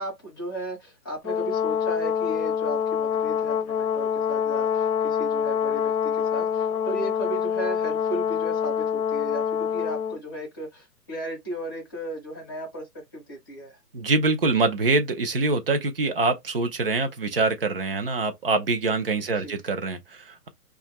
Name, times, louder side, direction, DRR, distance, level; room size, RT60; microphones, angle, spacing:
voice 1, 0.0-12.9 13.1-13.8 19.4-19.6, right 1 dB, 15° left, 0.6 m, -35 dB
Brass instrument, 1.2-10.2, left 8 dB, 65° left, 0.7 m, -26 dB
voice 2, 13.9-20.5, right 3 dB, 40° right, 0.6 m, -24 dB
2.7 x 2.4 x 4.0 m
hypercardioid pair, 155°, 48 cm